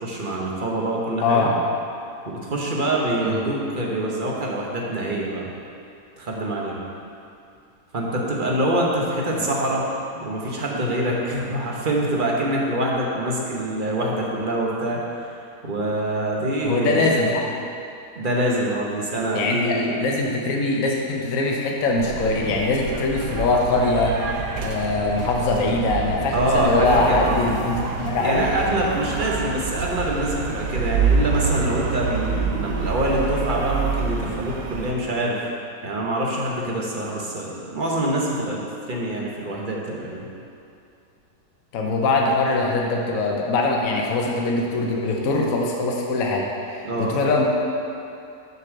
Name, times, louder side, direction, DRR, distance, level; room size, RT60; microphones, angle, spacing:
voice 1, 0.0-1.5 2.3-5.5 6.2-6.8 7.9-9.9 10.2-15.4 15.6-17.3 18.2-20.0 26.3-27.4 28.2-35.4 35.8-40.3 46.8-47.1, right 1 dB, 35° right, -3 dB, 1.0 m, -25 dB
voice 2, 1.2-1.5 3.2-3.4 9.4-9.5 16.6-17.5 19.3-24.1 24.6-28.4 41.7-47.5, left 3 dB, 60° left, -1 dB, 1.1 m, -22 dB
sound 1, 22.0-34.9, right 5 dB, 85° right, 1.3 m, -27 dB
6.8 x 4.8 x 6.4 m, 2.6 s
omnidirectional pair, 1.7 m